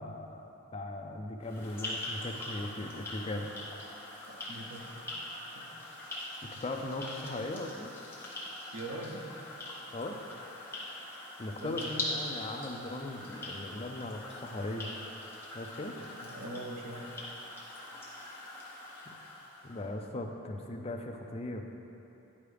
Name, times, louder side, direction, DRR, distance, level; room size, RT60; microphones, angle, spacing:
voice 1, 0.0-3.5 6.6-7.9 9.9-10.2 11.4-14.9 15.5-15.9 19.1-19.2 19.6-21.8, left 2 dB, 25° left, 3 dB, 0.4 m, -38 dB
sound 1, 1.4-19.9, left 1 dB, 10° left, 0.9 m, -42 dB
voice 2, 4.0-5.1 5.6-5.7 8.7-9.2 11.5-12.2 16.0-17.1, right 1 dB, 80° right, 1 dB, 0.8 m, -43 dB
10.0 x 4.6 x 3.4 m, 3.0 s
head